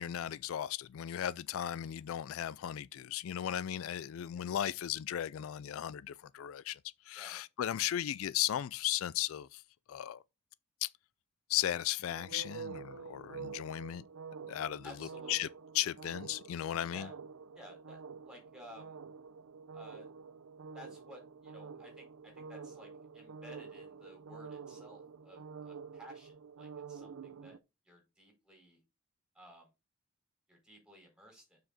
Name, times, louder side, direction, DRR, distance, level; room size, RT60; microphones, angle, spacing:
voice 1, 0.0-6.8 7.1-9.6 9.9-10.2 10.8-10.9 11.5-14.0 14.5-14.9 15.3-15.5 15.7-17.1, left 11 dB, 70° left, 0.3 m, -36 dB
sound 1, 12.1-27.6, right 5 dB, 90° right, 0.6 m, -48 dB
voice 2, 14.8-15.5 16.9-17.1 17.5-19.0 19.7-20.1 20.7-27.6 27.8-28.8 29.3-29.7 30.5-31.6, equal, 5° right, 4.3 m, -55 dB
7.1 x 6.3 x 4.1 m
head